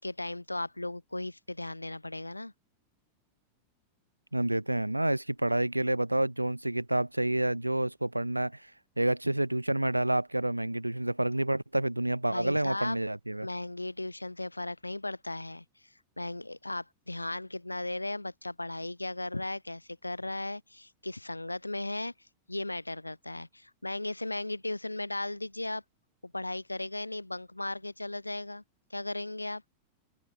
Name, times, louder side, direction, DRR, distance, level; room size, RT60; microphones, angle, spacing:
voice 1, 0.0-2.5 12.3-13.0 13.4-15.6 16.2-22.1 22.5-25.8 26.2-28.6 28.9-29.6, left 2 dB, 85° left, 6.3 m, -36 dB
voice 2, 4.3-8.6 9.0-13.5, right 1 dB, 85° right, 3.0 m, -29 dB
open air
figure-of-eight pair, 90°, 0 cm